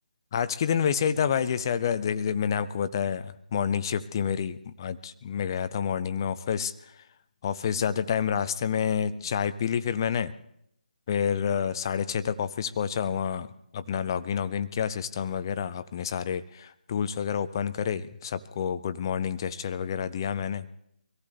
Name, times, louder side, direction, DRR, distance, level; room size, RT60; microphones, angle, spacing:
voice 1, 0.3-7.0 7.4-10.3 11.1-20.6, left 7 dB, 25° left, 13 dB, 0.5 m, -29 dB
23.5 x 15.0 x 3.2 m, 0.75 s
figure-of-eight pair, 150°, 5 cm